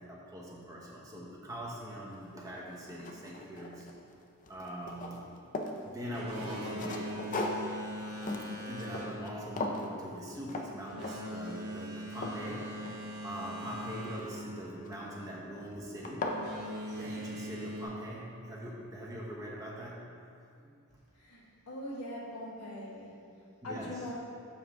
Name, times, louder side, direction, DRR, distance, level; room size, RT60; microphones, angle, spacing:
voice 1, 0.0-3.9 4.5-5.3 5.8-7.5 8.3-12.8 13.2-16.3 16.8-20.1 20.6-20.7 23.6-24.1, equal, 15° right, -4 dB, 0.9 m, -42 dB
sound 1, 2.1-2.2 2.7-4.1 4.4-5.8 6.3-9.3 9.6-9.9 10.5-10.7 11.0-11.4 11.8-13.4 14.9-15.3 15.7-15.8 16.0-16.4, left 2 dB, 35° left, 0.5 m, -38 dB
Boat Water vehicle, 6.0-15.5 16.2-17.8, equal, 80° right, 1.4 m, -42 dB
voice 2, 21.2-23.1 23.6-24.1, left 1 dB, 80° left, -5 dB, 1.6 m, -41 dB
7.0 x 6.2 x 3.6 m, 2.4 s
head